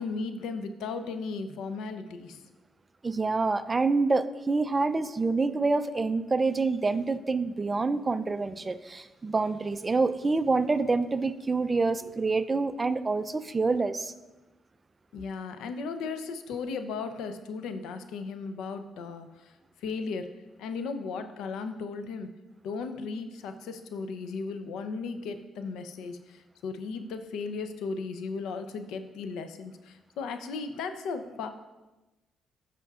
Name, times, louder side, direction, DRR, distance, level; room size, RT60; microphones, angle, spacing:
voice 1, 0.0-2.5 15.1-19.5 19.8-20.3 20.6-22.3 22.6-31.5, left 4 dB, 85° left, 0.6 m, -36 dB
voice 2, 3.0-14.1, right 3 dB, 25° right, 0.4 m, -27 dB
13.5 x 5.8 x 2.4 m
cardioid pair, 90°, 0 cm